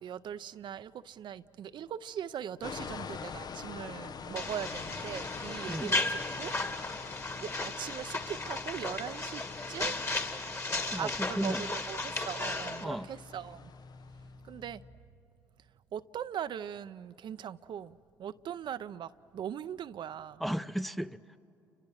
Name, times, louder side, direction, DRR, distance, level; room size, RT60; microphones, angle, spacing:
voice 1, 0.0-6.5 7.3-10.0 10.9-13.7 14.4-14.8 15.9-20.4, right 9 dB, 60° right, 0.6 m, -40 dB
sound 1, 2.6-14.4, left 6 dB, 50° left, 0.7 m, -46 dB
sound 2, 4.4-12.8, left 2 dB, 30° left, 2.2 m, -35 dB
sound 3, 4.7-14.9, left 3 dB, 85° left, 2.6 m, -53 dB
voice 2, 10.9-11.7 12.8-13.1 20.4-21.4, equal, ahead, 0.6 m, -35 dB
29.5 x 26.5 x 6.4 m
supercardioid pair, 55°, 9 cm